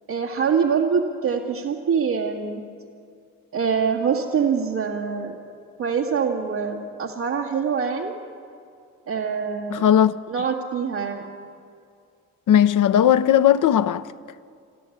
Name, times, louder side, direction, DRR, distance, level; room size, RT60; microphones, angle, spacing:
voice 1, 0.1-2.6 3.5-5.4 5.8-8.2 9.1-9.9 10.3-11.3, right 6 dB, 85° right, 2.1 m, -24 dB
voice 2, 9.7-10.2 12.5-14.1, left 10 dB, 65° left, 0.7 m, -17 dB
22.5 x 14.0 x 8.6 m
supercardioid pair, 45°, 34 cm